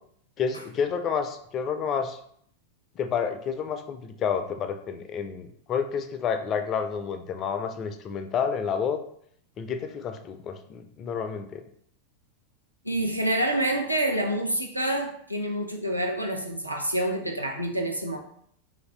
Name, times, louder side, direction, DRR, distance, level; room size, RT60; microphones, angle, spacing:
voice 1, 0.4-2.2 3.0-9.0 9.6-11.6, left 6 dB, 30° left, 8 dB, 0.3 m, -29 dB
voice 2, 12.8-18.2, right 1 dB, 90° right, 2 dB, 0.4 m, -27 dB
2.8 x 2.5 x 2.9 m, 0.66 s
figure-of-eight pair, 90°, 0 cm